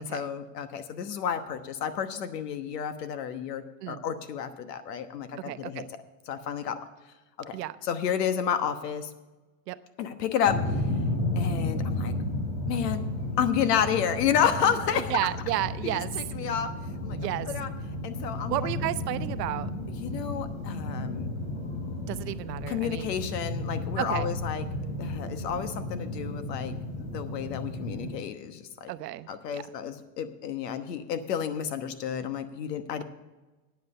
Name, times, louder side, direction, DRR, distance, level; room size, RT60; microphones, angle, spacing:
voice 1, 0.0-5.8 6.3-6.8 7.4-7.6 7.8-9.1 10.0-10.6 11.4-12.1 12.7-13.0 13.4-15.1 15.8-16.7 17.0-17.2 17.5-17.7 18.0-18.7 20.0-21.3 22.7-24.7 25.0-28.9 29.3-33.0, left 8 dB, 90° left, 10 dB, 1.2 m, -30 dB
voice 2, 5.4-5.9 7.5-7.8 9.7-9.8 14.9-16.1 16.4-16.5 17.1-17.5 18.5-19.7 22.1-23.2 24.0-24.3 28.9-29.6, right 15 dB, 90° right, 14 dB, 0.8 m, -32 dB
sound 1, 10.5-28.1, left 1 dB, 70° left, 3.5 m, -33 dB
9.2 x 7.8 x 8.1 m, 1.2 s
supercardioid pair, 135°, 47 cm